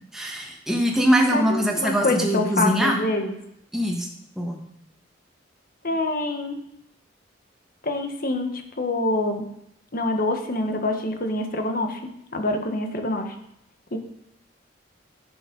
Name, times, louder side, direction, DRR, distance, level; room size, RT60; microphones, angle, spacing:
voice 1, 0.1-3.0 3.7-4.1 4.4-4.6, equal, ahead, -1 dB, 1.4 m, -22 dB
voice 2, 1.3-3.3 5.8-6.6 7.8-9.5 9.9-12.0 12.3-13.3 13.9-14.0, left 2 dB, 50° left, 5 dB, 1.4 m, -26 dB
10.5 x 7.3 x 5.3 m, 0.78 s
head